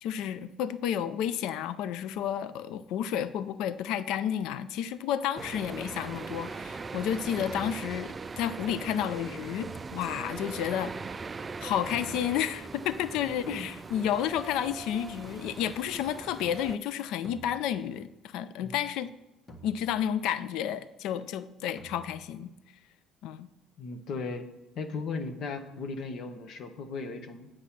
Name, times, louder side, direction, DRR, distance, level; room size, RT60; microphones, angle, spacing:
voice 1, 0.0-10.9 11.6-19.1 19.6-22.5 23.2-23.5, left 10 dB, 80° left, 14 dB, 0.5 m, -31 dB
sound 1, 5.4-5.9 7.4-8.2 9.6-10.4 11.9-12.6 15.2-15.8 17.2-18.1 19.5-20.3 21.8-22.5, equal, 35° left, 1.1 m, -51 dB
sound 2, 5.4-16.8, right 4 dB, 25° right, 0.3 m, -40 dB
voice 2, 23.8-24.5 24.7-27.5, left 4 dB, 60° left, 7 dB, 1.1 m, -36 dB
8.3 x 6.4 x 5.9 m, 0.98 s
cardioid pair, 125°, 0 cm